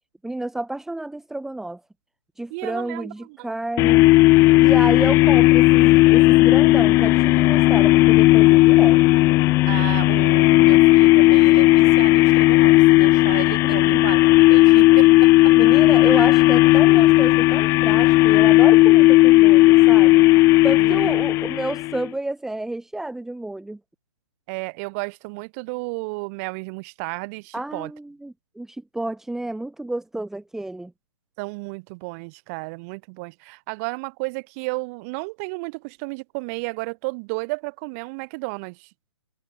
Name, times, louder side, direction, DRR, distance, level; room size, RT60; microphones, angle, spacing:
voice 1, 0.2-1.8 2.4-4.0 4.6-9.0 13.7-14.0 15.6-20.2 20.6-23.8 27.5-30.9, right 2 dB, 5° right, 3.4 m, -30 dB
voice 2, 2.5-3.1 3.4-3.5 9.7-14.2 14.5-15.5 20.8-21.0 24.5-27.9 31.4-38.9, right 30 dB, 30° right, 4.6 m, -33 dB
sound 1, 3.8-22.1, left 19 dB, 15° left, 0.6 m, -14 dB
figure-of-eight pair, 135°, 16 cm